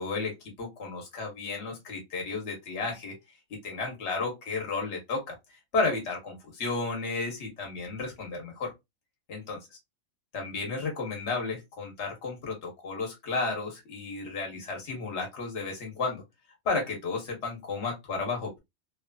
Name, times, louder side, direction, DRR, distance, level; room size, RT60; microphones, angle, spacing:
voice 1, 0.0-3.2 3.5-8.7 9.3-9.6 10.3-16.2 16.6-18.6, left 3 dB, 55° left, 1.4 m, -33 dB
3.1 x 2.4 x 2.3 m
omnidirectional pair, 1.4 m